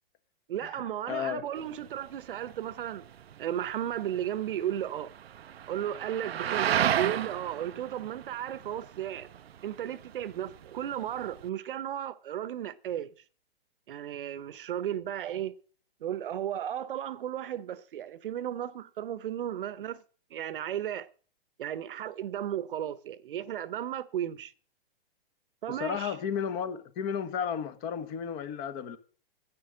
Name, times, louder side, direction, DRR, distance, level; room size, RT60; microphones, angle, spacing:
voice 1, 0.5-3.1 3.4-5.1 5.7-9.3 9.6-13.1 13.9-15.5 16.0-20.0 20.3-21.1 21.6-24.5 25.6-26.2, right 10 dB, 60° right, 1.0 m, -34 dB
voice 2, 1.1-1.4 25.7-29.0, left 7 dB, 30° left, 1.3 m, -33 dB
sound 1, 1.6-11.5, right 10 dB, 80° right, 0.7 m, -35 dB
10.5 x 9.4 x 6.3 m
hypercardioid pair, 130°, 30 cm